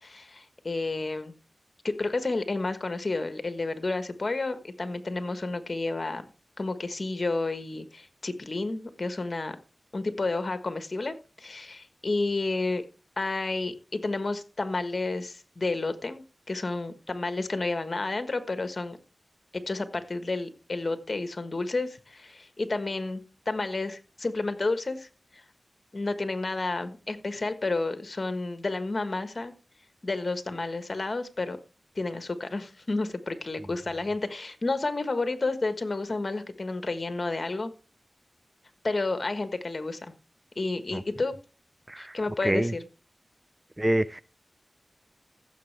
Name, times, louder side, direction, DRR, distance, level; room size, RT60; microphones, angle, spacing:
voice 1, 0.0-1.3 1.8-6.2 6.6-9.6 9.9-12.8 13.2-16.2 16.5-19.0 19.5-25.1 25.3-25.4 25.9-29.5 30.0-31.6 31.9-37.7 38.8-40.1 40.6-41.3 42.0-42.8, left 3 dB, 50° left, 1.3 m, -31 dB
voice 2, 41.9-42.7 43.8-44.2, right 1 dB, 20° right, 0.5 m, -27 dB
15.0 x 7.3 x 3.3 m
wide cardioid pair, 55°, 0 cm